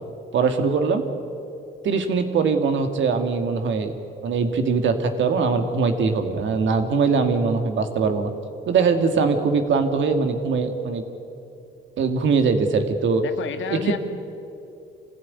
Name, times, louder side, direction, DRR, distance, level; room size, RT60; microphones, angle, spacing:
voice 1, 0.3-1.0 1.8-3.9 4.2-8.3 8.7-11.1 12.0-13.2 13.7-14.0, right 5 dB, 70° right, 7 dB, 2.3 m, -21 dB
voice 2, 13.2-14.0, left 8 dB, 75° left, 8 dB, 1.8 m, -30 dB
25.0 x 16.0 x 9.8 m, 2.6 s
cardioid pair, 90°, 20 cm